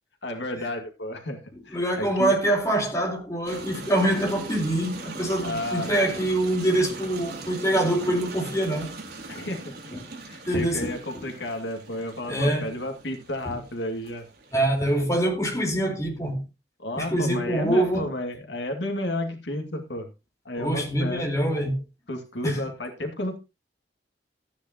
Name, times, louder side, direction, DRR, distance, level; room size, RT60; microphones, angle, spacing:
voice 1, 0.2-2.3 5.4-5.9 9.3-9.7 10.2-14.3 16.8-20.1 20.5-21.3 22.1-23.4, left 1 dB, 85° left, 2.3 m, -32 dB
voice 2, 1.7-9.0 10.5-11.2 12.3-12.8 13.4-13.5 14.5-16.4 16.9-18.1 20.6-21.8 22.4-22.6, right 1 dB, 20° left, 4.2 m, -25 dB
sound 1, 3.4-15.2, right 3 dB, 60° right, 4.1 m, -41 dB
13.5 x 10.0 x 2.9 m
head